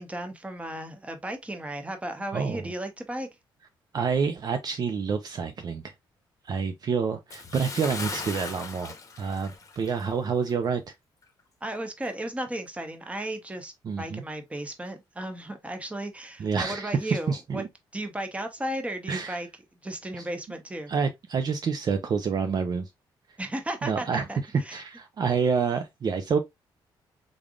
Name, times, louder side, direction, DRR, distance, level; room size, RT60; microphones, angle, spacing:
voice 1, 0.0-3.3 11.6-17.6 17.9-19.5 19.8-20.9 23.4-24.8, right 1 dB, 15° right, 0.9 m, -35 dB
voice 2, 2.3-2.7 3.9-5.9 6.4-10.9 13.8-14.2 16.4-17.7 19.1-19.4 20.2-20.3 20.9-22.9 23.8-24.2 24.7-26.4, right 5 dB, 45° right, 0.5 m, -28 dB
Bathtub (filling or washing) / Splash splatter, 7.3-10.2 10.5-10.7 11.2-11.3, left 4 dB, 35° left, 0.9 m, -38 dB
3.8 x 3.3 x 2.4 m
cardioid pair, 90°, 9 cm